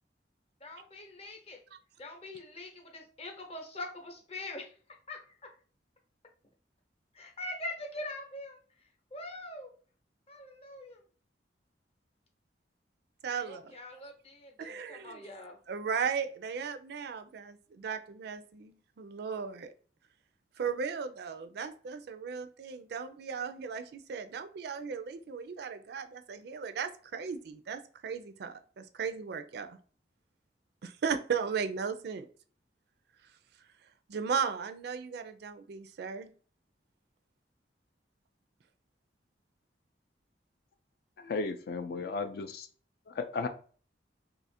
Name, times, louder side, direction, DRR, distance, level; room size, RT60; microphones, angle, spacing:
voice 1, 0.6-1.6 2.0-4.8 5.1-5.5 7.1-8.6 9.1-9.7 10.3-11.0 13.3-15.6, left 2 dB, 35° left, 2 dB, 0.8 m, -43 dB
voice 2, 13.2-13.7 14.6-15.2 15.7-19.7 20.6-29.8 30.8-32.3 34.1-36.3, right 6 dB, 65° right, 9 dB, 0.4 m, -36 dB
voice 3, 41.2-42.7 43.1-43.5, left 4 dB, 60° left, 7 dB, 0.4 m, -35 dB
2.8 x 2.4 x 4.1 m, 0.42 s
head